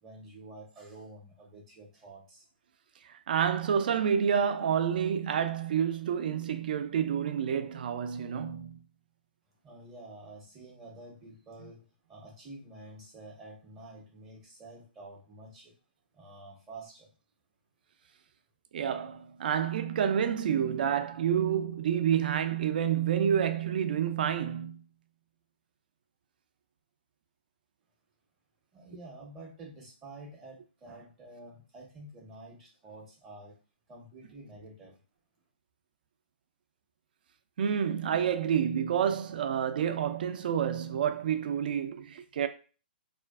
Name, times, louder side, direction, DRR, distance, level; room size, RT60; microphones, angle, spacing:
voice 1, 0.0-2.4 9.6-15.7 16.1-17.1 28.7-33.6 33.9-35.0, right 2 dB, 20° right, 0.6 m, -49 dB
voice 2, 3.1-8.8 18.7-24.8 37.6-42.5, right 8 dB, 60° right, 0.4 m, -29 dB
2.4 x 2.3 x 2.3 m
hypercardioid pair, 140°, 6 cm